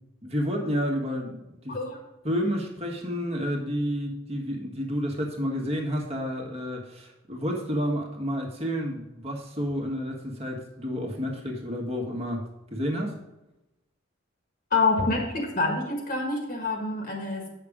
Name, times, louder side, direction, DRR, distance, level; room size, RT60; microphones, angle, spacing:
voice 1, 0.2-1.8 2.2-12.4 12.7-13.2, equal, 30° right, 1 dB, 1.5 m, -30 dB
voice 2, 14.7-17.5, left 3 dB, 45° left, 1 dB, 1.6 m, -26 dB
8.5 x 5.9 x 5.0 m, 0.96 s
head